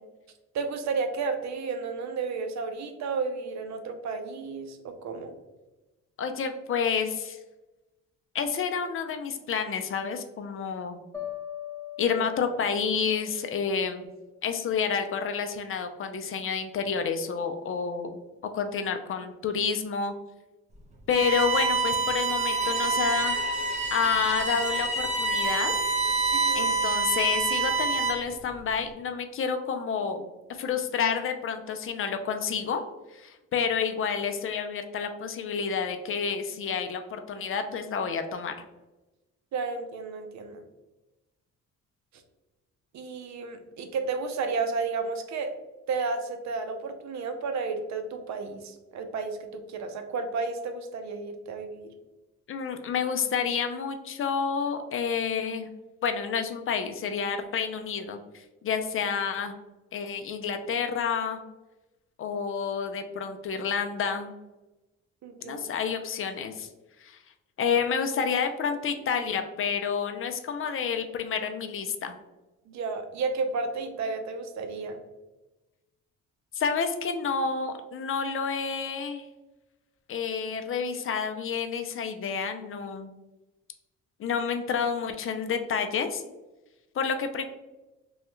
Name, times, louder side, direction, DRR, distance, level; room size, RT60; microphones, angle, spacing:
voice 1, 0.5-5.3 26.3-26.8 39.5-40.6 42.9-45.5 45.9-51.9 65.2-65.6 72.7-75.0, right 4 dB, 65° right, 7 dB, 0.6 m, -32 dB
voice 2, 6.2-7.4 8.3-11.0 12.0-14.1 14.4-18.2 18.5-20.1 21.1-23.5 23.9-25.8 26.5-32.8 33.1-38.6 52.5-55.7 56.0-59.6 59.9-61.4 62.2-64.3 65.4-66.7 67.0-67.2 67.6-72.2 76.5-79.3 80.1-83.1 84.2-86.2 86.9-87.4, left 6 dB, 45° left, 7 dB, 0.4 m, -29 dB
sound 1, 11.1-14.2, left 11 dB, 10° left, 0.8 m, -41 dB
Bowed string instrument, 21.1-28.4, right 4 dB, 25° right, 0.7 m, -27 dB
3.2 x 2.3 x 3.0 m, 1.1 s
cardioid pair, 90°, 30 cm